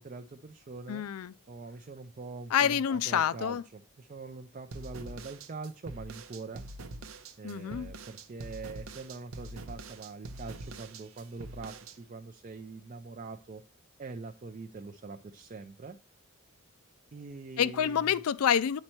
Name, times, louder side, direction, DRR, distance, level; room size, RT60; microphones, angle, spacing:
voice 1, 0.0-1.0 1.5-6.6 7.4-13.6 14.0-16.0 17.1-18.2, right 3 dB, 35° right, 0.4 m, -43 dB
voice 2, 0.9-1.3 2.5-3.6 7.4-7.9 17.6-18.8, left 8 dB, 85° left, 0.4 m, -27 dB
sound 1, 4.7-12.0, right 2 dB, 70° right, 0.7 m, -44 dB
8.9 x 4.3 x 4.4 m
head